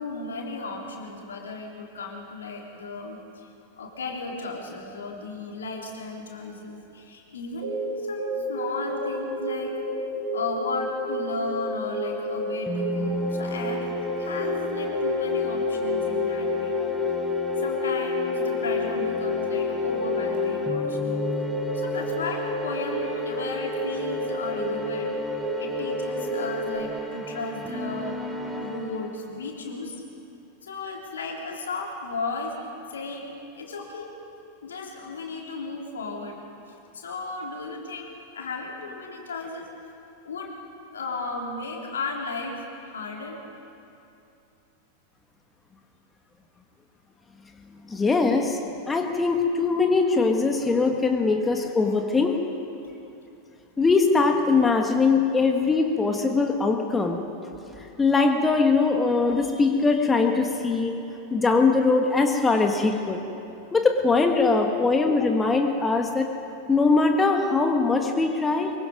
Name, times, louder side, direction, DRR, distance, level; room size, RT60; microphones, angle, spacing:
voice 1, 0.0-3.5 3.8-9.8 10.3-16.8 17.6-21.2 21.7-25.2 25.6-28.3 28.6-30.0 30.6-32.6 32.9-34.1 34.6-36.4 36.7-39.8 40.2-40.6 40.9-43.4, left 3 dB, 65° left, 0 dB, 3.5 m, -35 dB
sound 1, 7.6-26.8, left 2 dB, 60° right, 6.8 m, -29 dB
sound 2, 12.7-29.4, equal, 5° right, 2.7 m, -35 dB
voice 2, 47.9-48.6 48.9-52.4 53.8-57.2 58.0-60.9 61.3-63.2 63.7-66.3 66.7-68.7, left 4 dB, 15° left, 4 dB, 1.6 m, -21 dB
24.5 x 23.0 x 5.3 m, 2.8 s
figure-of-eight pair, 90°, 0 cm